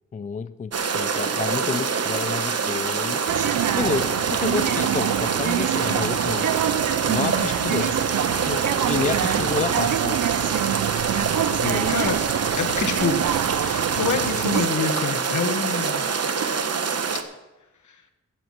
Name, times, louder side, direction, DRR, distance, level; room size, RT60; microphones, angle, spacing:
voice 1, 0.1-3.2 3.8-6.5 7.1-8.1 8.5-10.2 11.5-11.9, left 5 dB, 25° left, 0.4 m, -29 dB
sound 1, 0.7-17.2, right 5 dB, 55° right, 1.0 m, -25 dB
sound 2, 3.3-14.7, right 11 dB, 80° right, 0.5 m, -26 dB
voice 2, 12.5-13.2 13.5-16.1, left 5 dB, 75° left, 1.5 m, -26 dB
15.0 x 8.0 x 5.9 m
wide cardioid pair, 125°, 30 cm